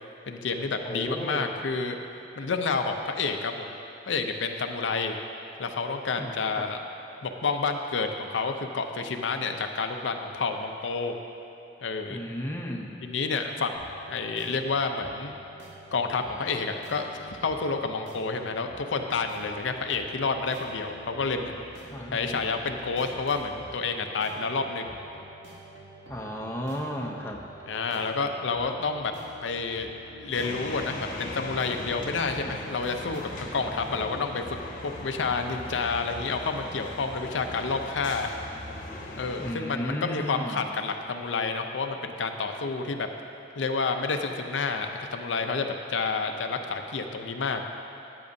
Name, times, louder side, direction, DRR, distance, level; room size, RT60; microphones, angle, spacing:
voice 1, 0.3-2.0 2.4-3.7 4.1-5.2 5.6-6.8 7.2-11.1 11.8-12.2 13.0-13.8 14.1-15.3 15.9-21.6 22.1-25.0 27.7-29.1 29.4-29.9 30.2-34.6 34.8-38.3 39.2-43.1 43.6-47.6, left 4 dB, 75° left, 5 dB, 0.5 m, -29 dB
voice 2, 0.8-1.7 6.2-6.7 12.1-13.0 21.9-22.5 26.1-27.5 39.4-40.7, equal, 15° left, 0 dB, 0.6 m, -34 dB
sound 1, 13.8-33.5, right 1 dB, 75° right, 1.4 m, -48 dB
sound 2, 30.3-39.5, left 1 dB, 45° left, 1.0 m, -39 dB
13.5 x 9.5 x 2.7 m, 2.7 s
head